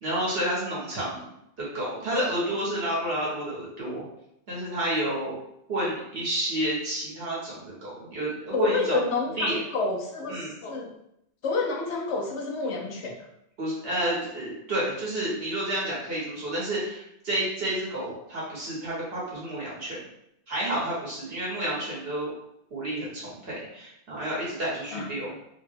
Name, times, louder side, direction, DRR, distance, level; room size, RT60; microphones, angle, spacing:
voice 1, 0.0-1.3 1.6-4.0 4.5-5.3 5.7-9.1 9.4-9.6 10.3-10.5 13.6-20.0 20.5-22.3 22.7-25.3, right 1 dB, 65° right, -6 dB, 1.5 m, -30 dB
voice 2, 8.5-10.9 11.4-13.1 24.9-25.1, left 4 dB, 85° left, 0 dB, 1.0 m, -28 dB
3.5 x 2.2 x 3.3 m, 0.78 s
omnidirectional pair, 1.1 m